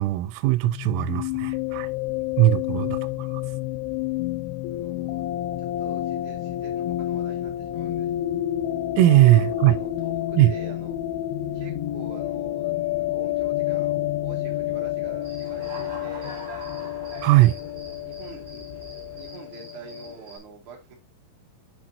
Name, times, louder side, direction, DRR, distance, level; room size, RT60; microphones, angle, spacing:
voice 1, 0.0-1.9 2.4-3.4 9.0-9.8 10.4-10.5 17.2-17.6, right 17 dB, 85° right, 3.2 m, -19 dB
sound 1, 0.6-20.1, left 14 dB, 85° left, 2.8 m, -29 dB
sound 2, 1.2-19.3, equal, 55° left, 1.3 m, -50 dB
voice 2, 4.7-5.2 5.6-8.1 9.0-11.0 11.5-16.4 17.2-17.5 18.0-18.7 19.1-20.9, right 4 dB, 50° right, 1.6 m, -45 dB
Human voice / Cricket, 15.2-20.4, right 2 dB, 25° right, 2.6 m, -43 dB
8.7 x 5.4 x 2.8 m
omnidirectional pair, 6.0 m